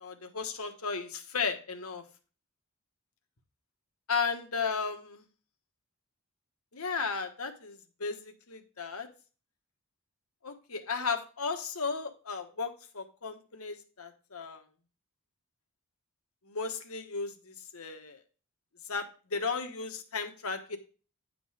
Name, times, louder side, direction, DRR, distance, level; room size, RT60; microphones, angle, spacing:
voice 1, 0.0-2.0 4.1-5.2 6.7-9.1 10.4-14.6 16.5-18.2 18.9-20.8, left 5 dB, 85° left, 6 dB, 1.2 m, -35 dB
9.6 x 3.9 x 4.8 m, 0.36 s
head